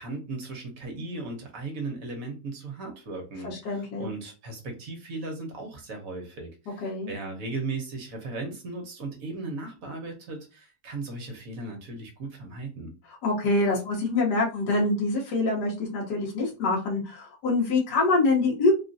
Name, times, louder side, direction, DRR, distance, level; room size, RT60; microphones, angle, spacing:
voice 1, 0.0-12.9, right 3 dB, 60° right, 2 dB, 1.2 m, -37 dB
voice 2, 3.4-4.1 6.8-7.1 13.2-18.7, left 2 dB, 75° left, -3 dB, 1.6 m, -25 dB
3.6 x 2.4 x 2.5 m, 0.31 s
omnidirectional pair, 1.8 m